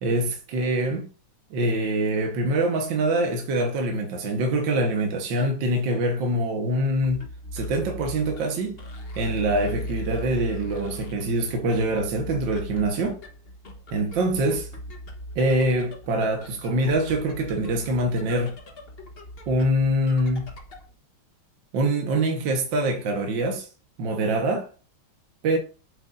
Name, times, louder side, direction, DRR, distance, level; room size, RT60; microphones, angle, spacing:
voice 1, 0.0-1.1 1.5-7.3 7.5-8.8 9.2-13.2 13.9-14.7 15.4-18.6 19.5-20.5 21.7-23.7 24.0-24.7 25.4-25.6, right 1 dB, 65° right, 1.9 m, -24 dB
sound 1, 6.9-20.9, equal, 35° left, 1.1 m, -39 dB
8.2 x 8.1 x 2.6 m
omnidirectional pair, 2.3 m